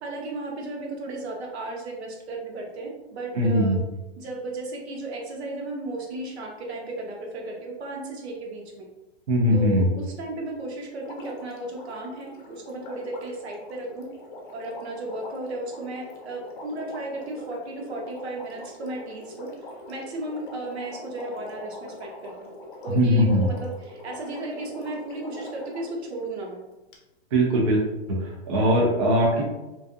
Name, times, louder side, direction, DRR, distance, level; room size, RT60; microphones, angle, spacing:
voice 1, 0.0-3.8 4.2-8.9 9.5-14.1 14.5-19.5 19.9-22.5 22.8-26.6, right 2 dB, 70° right, -1 dB, 0.9 m, -34 dB
voice 2, 3.3-3.8 9.3-9.9 22.9-23.5 27.3-27.8 28.1-29.4, equal, 30° right, -2 dB, 0.4 m, -21 dB
Water, 11.0-26.0 26.9-27.0, left 2 dB, 50° left, 0.6 m, -43 dB
2.5 x 2.3 x 2.4 m, 1.0 s
hypercardioid pair, 150°, 33 cm